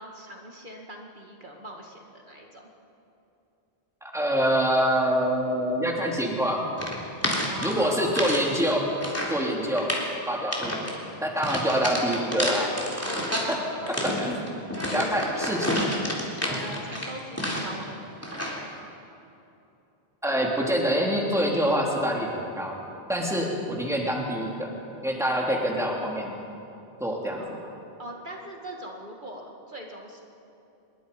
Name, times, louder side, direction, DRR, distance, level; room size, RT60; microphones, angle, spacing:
voice 1, 0.0-2.6 7.5-8.3 13.1-14.3 14.8-15.3 16.2-18.0 27.4-30.2, right 1 dB, 50° right, 0 dB, 2.3 m, -41 dB
voice 2, 4.0-6.6 7.6-8.9 9.3-9.9 10.3-10.9 11.2-12.7 13.5-13.6 13.9-14.5 14.9-16.0 20.2-22.8 23.1-24.7 25.0-26.3 27.0-27.4, equal, 5° right, -1 dB, 3.0 m, -26 dB
sound 1, 6.8-8.4 8.7-9.4 9.7-10.1 10.5-11.0 11.4-13.5 13.9-17.8 18.2-18.7, equal, 15° left, 3.6 m, -29 dB
26.0 x 22.0 x 5.4 m, 2.9 s
omnidirectional pair, 1.1 m